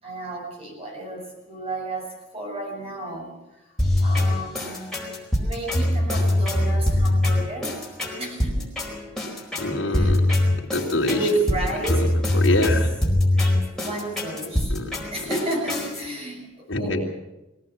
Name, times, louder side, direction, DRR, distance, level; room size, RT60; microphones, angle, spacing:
voice 1, 0.0-3.7 4.0-5.0 5.3-7.7 8.2-8.7 9.9-10.2 11.0-12.1 12.4-12.7 13.3-13.5 13.8-14.7 15.1-17.0, right 2 dB, 30° right, 0 dB, 7.0 m, -32 dB
sound 1, 3.8-16.0, left 1 dB, ahead, 4.6 m, -23 dB
voice 2, 9.6-10.2 10.7-11.2 11.9-12.1 12.3-12.9 14.7-14.9 16.7-17.1, left 2 dB, 75° left, 0 dB, 3.6 m, -24 dB
22.5 x 17.5 x 7.6 m, 0.97 s
head